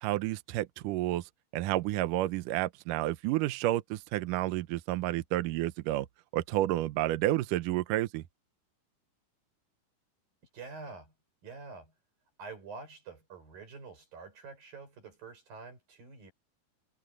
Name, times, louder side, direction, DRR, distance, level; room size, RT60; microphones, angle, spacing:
voice 1, 0.0-1.2 1.5-6.1 6.3-8.2, right 15 dB, 80° right, 1.9 m, -30 dB
voice 2, 10.5-11.1 11.4-11.9 12.4-16.3, right 4 dB, 60° right, 8.7 m, -47 dB
omnidirectional pair, 4.7 m